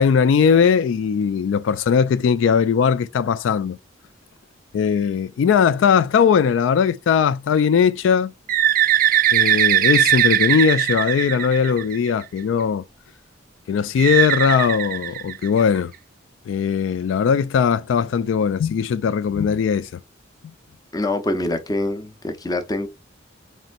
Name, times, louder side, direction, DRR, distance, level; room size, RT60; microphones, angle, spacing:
voice 1, 0.0-3.8 4.7-8.3 9.3-12.8 13.7-15.9 16.5-20.0, left 6 dB, 80° left, 0.3 m, -19 dB
Bird, 8.5-12.2 14.0-15.8, right 11 dB, 45° right, 0.3 m, -19 dB
voice 2, 20.9-22.9, left 1 dB, 20° left, 0.7 m, -25 dB
4.1 x 3.2 x 2.5 m
head